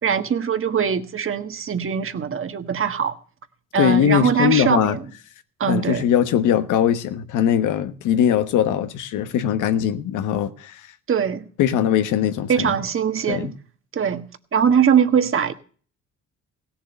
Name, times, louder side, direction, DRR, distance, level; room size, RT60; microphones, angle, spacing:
voice 1, 0.0-3.2 3.7-5.0 5.6-6.0 11.1-11.5 12.5-13.5 13.9-14.2 14.5-15.5, right 7 dB, 45° right, 1.5 m, -21 dB
voice 2, 3.8-5.0 5.7-10.9 11.6-12.7 13.3-13.5, left 9 dB, 90° left, 1.3 m, -21 dB
17.0 x 7.5 x 6.7 m
cardioid pair, 90°, 30 cm